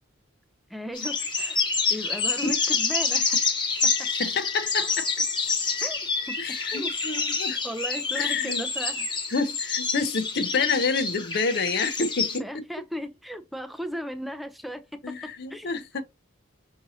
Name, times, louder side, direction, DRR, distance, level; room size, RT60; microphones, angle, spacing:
voice 1, 0.7-1.6 1.9-3.6 3.8-4.1 5.8-6.0 6.3-6.9 7.6-9.1 10.2-10.3 10.6-10.7 12.4-15.8, equal, ahead, 0.5 m, -36 dB
sound 1, 0.9-12.4, left 4 dB, 20° left, 1.1 m, -27 dB
voice 2, 4.1-5.2 6.4-7.6 8.1-8.6 9.3-12.6 15.0-16.0, left 4 dB, 50° left, 0.6 m, -28 dB
5.9 x 2.7 x 2.7 m
head